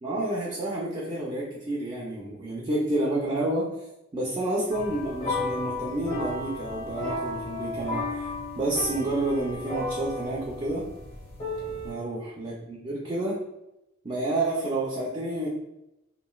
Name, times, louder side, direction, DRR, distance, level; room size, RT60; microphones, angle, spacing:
voice 1, 0.0-3.7 4.1-10.8 11.8-13.4 14.0-15.5, right 1 dB, 25° right, -5 dB, 0.4 m, -29 dB
sound 1, 4.7-11.9, left 2 dB, 30° left, 0.7 m, -34 dB
3.0 x 2.5 x 2.3 m, 0.88 s
head